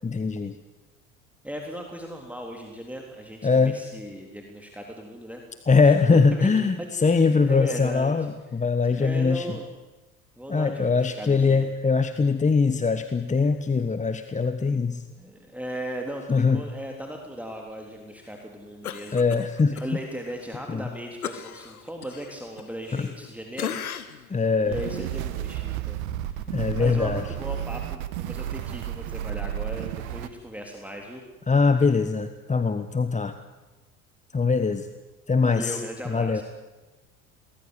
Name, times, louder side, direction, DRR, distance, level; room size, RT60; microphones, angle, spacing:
voice 1, 0.0-0.6 3.4-3.8 5.7-9.6 10.5-15.0 16.3-16.6 19.1-19.8 20.7-20.9 22.9-23.1 24.3-24.8 26.5-27.2 31.5-33.3 34.3-34.9 35.3-36.4, left 4 dB, 15° left, 10 dB, 1.3 m, -22 dB
voice 2, 1.4-5.4 5.8-6.5 6.8-8.2 8.9-9.7 10.4-11.7 15.2-19.2 19.7-24.4 24.6-26.5 26.7-31.2 35.4-36.4, equal, 5° right, 2 dB, 3.6 m, -37 dB
Cough, 18.8-19.9 20.3-20.4 21.2-23.3 23.6-24.3 24.8-24.9, left 9 dB, 90° left, 1.3 m, -36 dB
sound 1, 24.6-30.3, right 11 dB, 75° right, 1.6 m, -32 dB
23.0 x 20.0 x 8.2 m, 1.2 s
hypercardioid pair, 70°, 42 cm